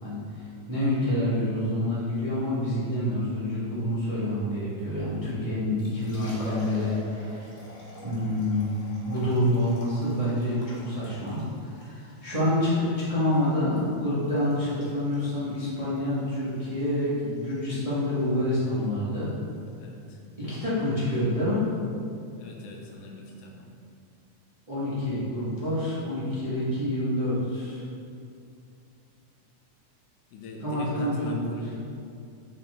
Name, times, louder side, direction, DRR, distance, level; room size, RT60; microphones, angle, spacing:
voice 1, 0.0-7.4 8.0-8.7 9.0-11.4 11.8-19.3 20.4-21.6 24.7-27.8 30.6-31.4, left 1 dB, 30° right, -11 dB, 0.6 m, -27 dB
Liquid, 5.8-22.9, left 1 dB, 40° left, 1.0 m, -48 dB
voice 2, 19.8-20.2 22.4-23.7 30.3-31.8, left 1 dB, 85° left, 0 dB, 2.3 m, -41 dB
7.2 x 5.2 x 3.7 m, 2.4 s
omnidirectional pair, 3.5 m